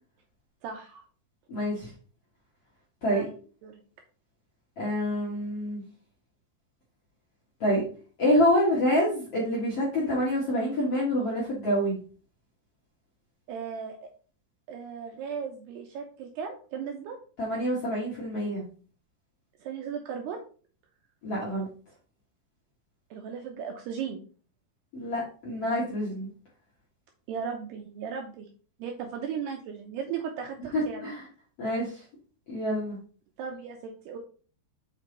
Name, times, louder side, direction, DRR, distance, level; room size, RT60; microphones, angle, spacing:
voice 1, 0.6-1.0 3.1-3.3 3.6-3.8 13.5-14.1 14.7-17.2 19.6-20.4 23.1-24.2 27.3-28.5 28.8-31.1 33.4-34.2, right 7 dB, 80° right, 3 dB, 2.5 m, -36 dB
voice 2, 1.5-1.9 3.0-3.3 4.8-5.8 7.6-7.8 8.2-12.0 17.4-18.6 21.2-21.7 24.9-26.3 31.0-31.2 31.6-32.0 32.5-33.0, equal, 50° left, -6 dB, 1.8 m, -27 dB
7.1 x 5.4 x 3.9 m, 0.40 s
omnidirectional pair, 5.5 m